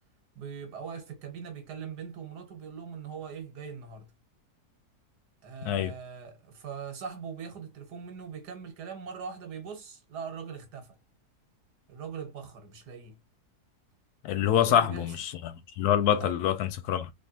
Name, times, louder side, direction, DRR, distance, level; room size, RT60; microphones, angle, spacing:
voice 1, 0.4-4.1 5.4-11.0 11.9-13.2 14.6-15.0 16.2-16.3, right 6 dB, 85° right, 1.7 m, -41 dB
voice 2, 5.6-5.9 14.2-17.1, left 10 dB, 75° left, 1.1 m, -26 dB
3.4 x 3.1 x 2.7 m
omnidirectional pair, 1.7 m